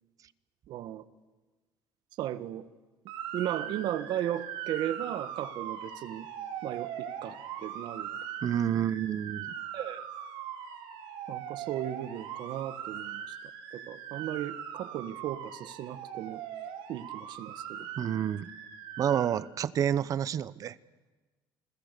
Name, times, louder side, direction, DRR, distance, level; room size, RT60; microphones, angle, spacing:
voice 1, 0.7-1.0 2.2-2.7 3.3-6.3 6.6-8.1 9.7-10.1 11.3-13.3 13.7-16.4 16.9-17.9, right 12 dB, 65° right, 14 dB, 1.4 m, -36 dB
Motor vehicle (road) / Siren, 3.1-19.3, right 8 dB, 85° right, 4.4 m, -40 dB
voice 2, 8.4-9.5 18.0-18.5 19.0-20.8, right 9 dB, 45° right, 19 dB, 0.8 m, -29 dB
29.5 x 21.5 x 6.8 m, 1.3 s
cardioid pair, 135°, 9 cm